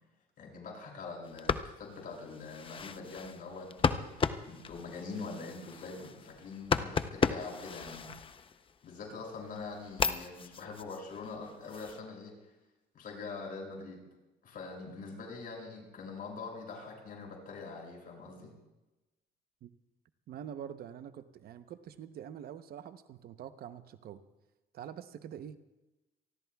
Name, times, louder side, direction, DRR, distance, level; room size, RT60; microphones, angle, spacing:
voice 1, 0.4-8.1 8.8-12.3 12.9-14.0 14.4-18.5, left 4 dB, 55° left, 0 dB, 6.7 m, -44 dB
sound 1, 1.2-8.9 9.4-12.0, left 6 dB, 30° left, 0.7 m, -35 dB
voice 2, 20.3-24.2 24.7-25.6, right 9 dB, 60° right, 11 dB, 0.9 m, -45 dB
27.5 x 19.5 x 2.3 m, 1.1 s
cardioid pair, 105°, 18 cm